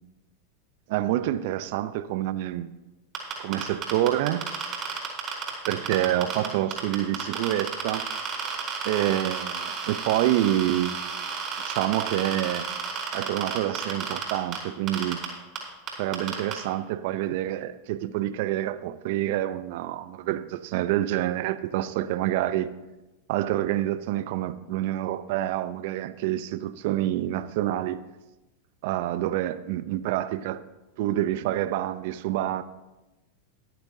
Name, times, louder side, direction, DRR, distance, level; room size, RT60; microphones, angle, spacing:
voice 1, 0.9-2.7 3.4-4.5 5.7-8.1 8.8-11.1 11.6-12.7 13.1-15.2 16.0-22.7 23.3-28.0 28.8-30.6 31.0-32.6, right 13 dB, 60° right, 0.6 m, -27 dB
sound 1, 3.1-6.5 6.7-14.6 14.9-15.2 15.5-15.6 15.9-16.5, right 7 dB, 40° right, 4.9 m, -31 dB
21.5 x 8.7 x 2.8 m
hypercardioid pair, 100°, 0 cm